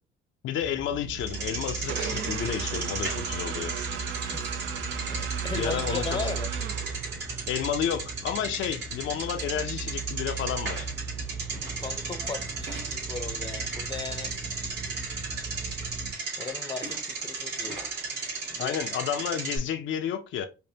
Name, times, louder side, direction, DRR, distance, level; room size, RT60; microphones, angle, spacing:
voice 1, 0.4-3.7 5.5-6.2 7.5-10.9 18.6-20.5, left 9 dB, 70° left, 0.5 m, -31 dB
sound 1, 0.6-16.1, right 5 dB, 25° right, 0.8 m, -37 dB
Bicycle, 1.2-19.6, right 4 dB, 60° right, 2.1 m, -35 dB
sound 2, 1.9-7.5, right 8 dB, 80° right, 0.5 m, -37 dB
voice 2, 4.1-4.7 5.1-6.5 11.8-14.3 16.4-17.8 18.5-18.8, left 5 dB, 20° left, 0.6 m, -37 dB
5.2 x 2.1 x 2.7 m
cardioid pair, 90°, 20 cm